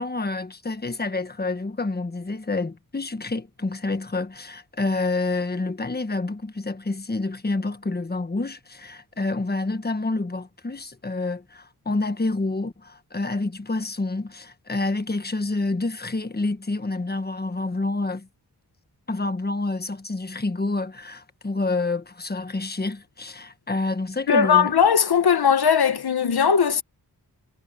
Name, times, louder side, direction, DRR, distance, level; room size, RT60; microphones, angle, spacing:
voice 1, 0.0-18.3 19.1-24.7, left 3 dB, 25° left, 1.4 m, -28 dB
voice 2, 24.3-26.8, left 7 dB, 80° left, 1.2 m, -19 dB
wide cardioid pair, 100°, 38 cm